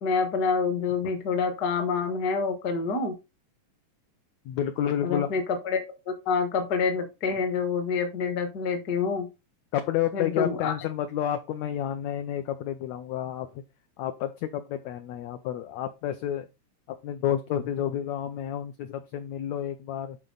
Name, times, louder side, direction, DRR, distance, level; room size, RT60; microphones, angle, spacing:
voice 1, 0.0-3.1 5.0-9.3 10.1-10.7, left 5 dB, 50° left, 7 dB, 1.2 m, -27 dB
voice 2, 4.4-5.3 9.7-13.6 14.0-16.5 16.9-20.2, left 10 dB, 80° left, 8 dB, 1.6 m, -30 dB
11.0 x 4.4 x 3.9 m, 0.26 s
omnidirectional pair, 3.9 m